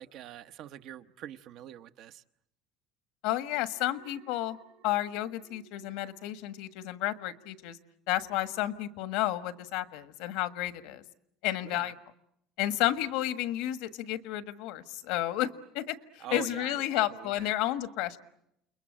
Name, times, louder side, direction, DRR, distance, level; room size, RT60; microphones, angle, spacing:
voice 1, 0.0-2.2 11.6-11.9 16.2-17.5, right 12 dB, 60° right, 1.0 m, -44 dB
voice 2, 3.2-4.6 4.8-7.8 8.1-11.0 11.4-11.9 12.6-18.2, left 14 dB, 80° left, 1.5 m, -31 dB
Alarm, 3.7-7.0 7.4-7.7, right 11 dB, 90° right, 5.9 m, -61 dB
29.5 x 21.5 x 8.8 m
cardioid pair, 120°, 0 cm